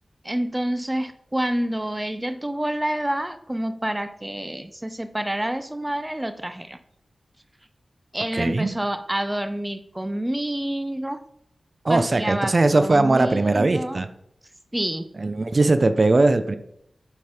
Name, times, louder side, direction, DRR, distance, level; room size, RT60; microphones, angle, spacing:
voice 1, 0.2-6.8 8.1-11.2 11.9-14.0 14.7-15.1, right 1 dB, 15° right, 10 dB, 0.7 m, -28 dB
voice 2, 8.3-8.7 11.8-14.1 15.2-16.6, right 2 dB, 50° right, 10 dB, 0.7 m, -20 dB
7.9 x 5.3 x 5.1 m, 0.73 s
cardioid pair, 45°, 0 cm